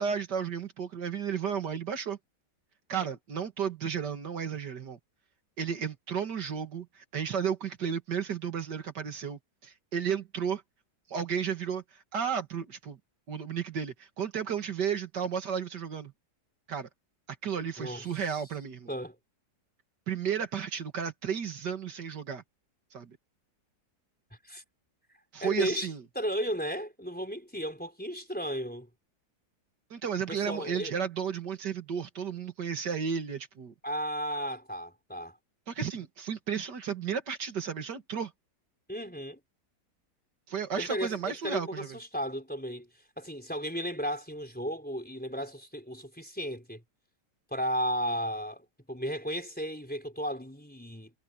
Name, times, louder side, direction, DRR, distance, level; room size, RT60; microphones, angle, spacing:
voice 1, 0.0-2.2 2.9-5.0 5.6-10.6 11.1-13.0 13.3-16.1 16.7-16.9 17.4-18.9 20.1-22.4 22.9-23.2 25.3-26.0 29.9-33.7 35.7-38.3 40.5-42.0, right 7 dB, 85° right, 2.5 m, -33 dB
voice 2, 25.4-28.9 30.3-30.9 33.8-35.4 38.9-39.4 40.8-42.9 43.2-46.8 47.5-51.1, equal, 5° left, 4.2 m, -34 dB
omnidirectional pair, 1.8 m